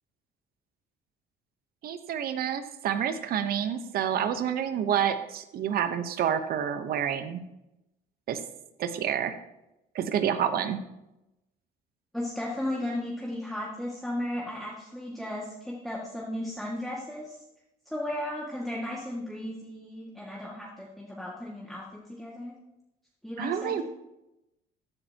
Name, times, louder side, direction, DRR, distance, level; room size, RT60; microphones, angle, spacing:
voice 1, 1.8-7.4 8.3-8.4 8.8-9.3 9.9-10.8 23.4-23.8, right 9 dB, 60° right, 10 dB, 1.0 m, -28 dB
voice 2, 12.1-17.4 17.9-22.6 23.2-23.8, left 1 dB, ahead, -5 dB, 2.0 m, -35 dB
15.0 x 9.9 x 2.9 m, 0.93 s
cardioid pair, 110°, 17 cm